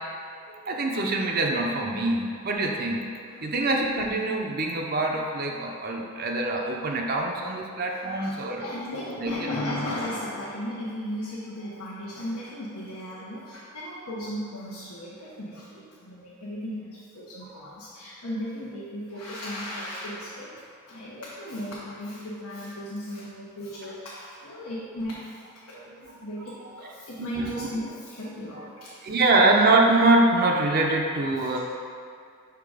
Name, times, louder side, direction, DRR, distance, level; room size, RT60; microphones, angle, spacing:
voice 1, 0.7-8.6 9.2-9.3 27.2-27.7 29.0-31.6, right 2 dB, 40° right, 1 dB, 0.5 m, -24 dB
voice 2, 7.9-25.4 25.7-28.9 31.3-31.6, equal, 85° left, -8 dB, 1.0 m, -36 dB
5.8 x 3.6 x 4.8 m, 2.3 s
head